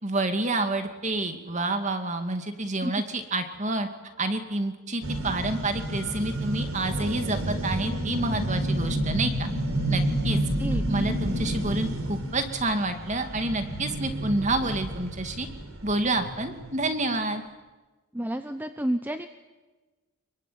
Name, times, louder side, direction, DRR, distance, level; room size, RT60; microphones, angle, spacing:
voice 1, 0.0-3.9 4.2-9.5 9.9-10.4 10.9-15.5 15.8-17.4, right 2 dB, 30° right, 7 dB, 2.3 m, -28 dB
sound 1, 5.0-16.9, right 1 dB, 70° right, 4.8 m, -30 dB
voice 2, 10.3-10.8 18.1-19.3, right 1 dB, 10° right, 8 dB, 0.8 m, -30 dB
25.5 x 23.5 x 9.4 m, 1.2 s
head